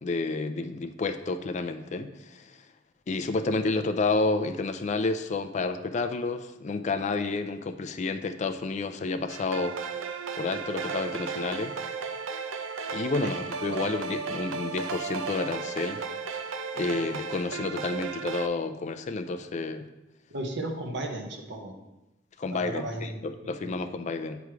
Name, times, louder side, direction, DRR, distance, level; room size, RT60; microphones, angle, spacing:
voice 1, 0.0-2.6 3.1-9.8 10.3-11.8 12.9-16.0 16.7-19.8 22.4-24.4, left 3 dB, 40° left, 8 dB, 0.4 m, -30 dB
sound 1, 9.3-18.5, right 5 dB, 85° right, 0.5 m, -34 dB
voice 2, 20.3-21.7 22.5-23.8, right 1 dB, 65° right, 3 dB, 0.9 m, -35 dB
8.0 x 3.1 x 4.7 m, 0.96 s
head